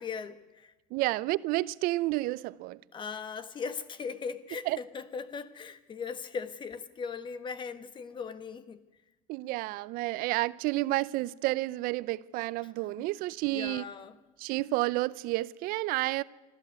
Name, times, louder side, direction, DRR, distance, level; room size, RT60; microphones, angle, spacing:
voice 1, 0.0-0.7 2.9-8.8 13.0-13.1 13.5-14.2, left 5 dB, 30° left, 1.3 m, -39 dB
voice 2, 0.9-2.8 4.7-4.8 9.3-13.9 14.4-16.2, right 19 dB, 70° right, 0.6 m, -30 dB
24.5 x 13.5 x 9.4 m
cardioid pair, 135°, 15 cm